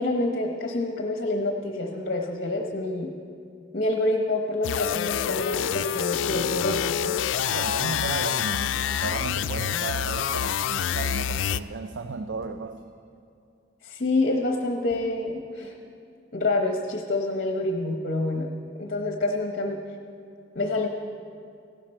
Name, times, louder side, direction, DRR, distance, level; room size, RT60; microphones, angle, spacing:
voice 1, 0.0-3.1 3.7-7.2 13.8-15.7 16.3-18.5 18.8-19.8 20.5-20.9, left 2 dB, 50° left, 3 dB, 0.9 m, -27 dB
sound 1, 4.6-11.6, left 9 dB, 85° left, 0.3 m, -27 dB
voice 2, 7.5-12.8, right 4 dB, 70° right, 8 dB, 0.5 m, -34 dB
sound 2, 12.4-12.8 14.9-15.2, right 1 dB, ahead, 3.3 m, -45 dB
15.5 x 12.0 x 4.4 m, 2.5 s
head